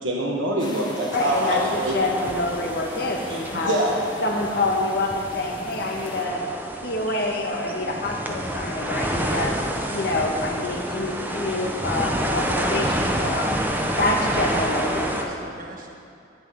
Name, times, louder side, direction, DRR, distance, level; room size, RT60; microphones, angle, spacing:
voice 1, 0.0-2.0 3.3-4.0 7.1-7.2, right 1 dB, 85° right, -2 dB, 1.4 m, -25 dB
sound 1, 0.6-6.3, left 2 dB, 25° left, 1.4 m, -40 dB
voice 2, 1.1-3.7 4.2-6.4 6.8-9.6 9.9-13.6 14.0-15.3, left 2 dB, 55° left, 0 dB, 1.6 m, -26 dB
sound 2, 1.1-15.2, equal, 10° right, 0.9 m, -29 dB
voice 3, 14.5-15.9, right 2 dB, 50° right, 0 dB, 1.4 m, -41 dB
11.5 x 6.3 x 9.3 m, 2.5 s
head